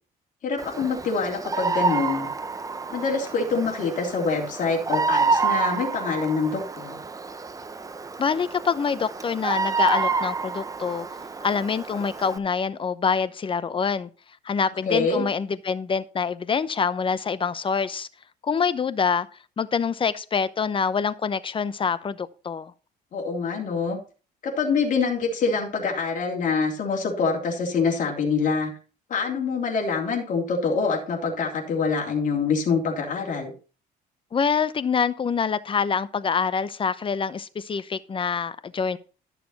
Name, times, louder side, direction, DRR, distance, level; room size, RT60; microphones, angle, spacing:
voice 1, 0.4-2.3 2.9-7.0 14.9-15.2 23.1-24.0 24.4-28.7 29.1-33.5, left 4 dB, 50° left, 3.1 m, -25 dB
Bird vocalization bird call bird song, 0.6-12.4, right 4 dB, 20° right, 0.8 m, -28 dB
voice 2, 8.2-11.1 11.4-14.1 14.4-18.1 18.4-19.3 19.6-22.7 34.3-39.0, left 6 dB, 30° left, 0.8 m, -25 dB
12.5 x 6.8 x 4.2 m
cardioid pair, 110°, 17 cm